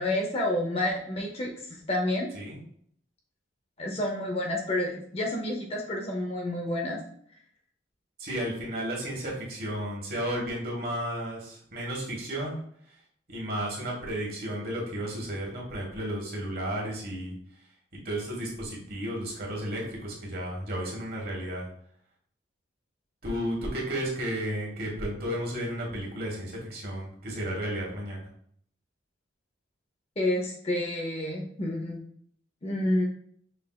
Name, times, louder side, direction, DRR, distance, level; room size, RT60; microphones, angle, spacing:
voice 1, 0.0-1.5 1.9-2.3 3.8-7.0 30.2-32.0 32.6-33.1, left 1 dB, 30° left, 0 dB, 0.7 m, -29 dB
voice 2, 8.2-12.6 13.3-17.3 18.0-21.7 23.2-28.3, equal, 50° right, -3 dB, 1.4 m, -33 dB
5.6 x 3.3 x 2.3 m, 0.63 s
head